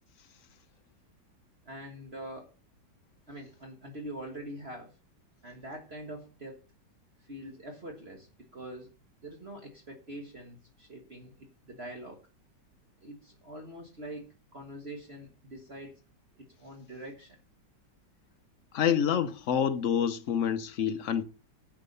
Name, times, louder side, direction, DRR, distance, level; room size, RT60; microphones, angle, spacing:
voice 1, 1.6-2.5 3.3-4.9 5.4-6.6 7.2-8.9 9.2-12.2 13.0-16.0 16.4-17.4, right 1 dB, 35° right, 1.7 m, -44 dB
voice 2, 18.7-21.2, left 8 dB, 55° left, 1.0 m, -27 dB
10.5 x 7.3 x 5.4 m
omnidirectional pair, 1.9 m